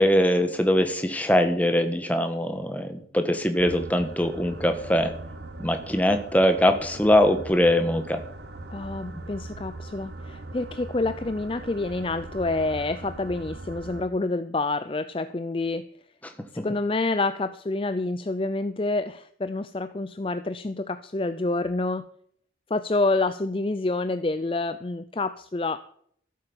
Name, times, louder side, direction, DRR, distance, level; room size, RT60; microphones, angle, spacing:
voice 1, 0.0-5.1 5.6-8.2 9.1-9.2 16.6-16.7, left 1 dB, 10° left, 7 dB, 1.4 m, -22 dB
sound 1, 3.6-14.0, right 2 dB, 65° right, 1.3 m, -40 dB
voice 2, 8.7-15.9 16.5-22.1 22.7-25.8, left 2 dB, 30° left, 12 dB, 0.5 m, -28 dB
14.5 x 8.5 x 7.1 m, 0.63 s
head